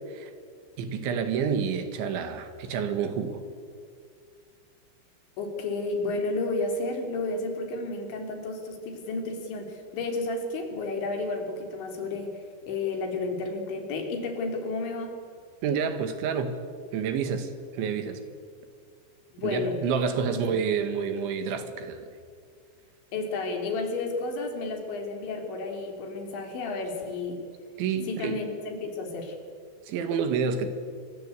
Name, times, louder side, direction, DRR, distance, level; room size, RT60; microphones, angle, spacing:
voice 1, 0.8-3.4 15.6-16.6 16.9-18.2 19.4-22.1 27.8-28.4 29.9-30.7, right 6 dB, 75° right, 9 dB, 4.2 m, -29 dB
voice 2, 5.4-12.4 12.7-15.2 19.3-19.8 20.3-20.5 23.1-27.4 28.0-29.4, left 3 dB, 70° left, 3 dB, 5.6 m, -32 dB
27.0 x 23.5 x 8.4 m, 2.1 s
omnidirectional pair, 5.4 m